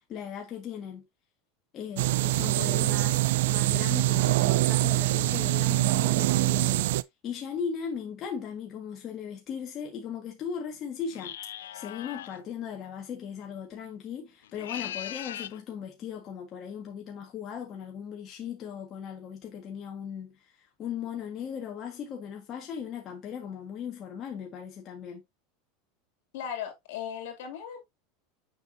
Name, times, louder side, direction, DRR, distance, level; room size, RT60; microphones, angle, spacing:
voice 1, 0.1-1.0 1.7-6.8 7.2-11.3 11.7-25.2, left 7 dB, 40° left, 1.6 m, -38 dB
sound 1, 2.0-7.0, right 18 dB, 75° right, 0.3 m, -24 dB
sound 2, 11.1-12.4 14.4-15.6, left 11 dB, 90° left, 0.4 m, -39 dB
voice 2, 26.3-27.8, left 8 dB, 75° left, 2.7 m, -37 dB
6.8 x 5.9 x 2.7 m
supercardioid pair, 120°, 0 cm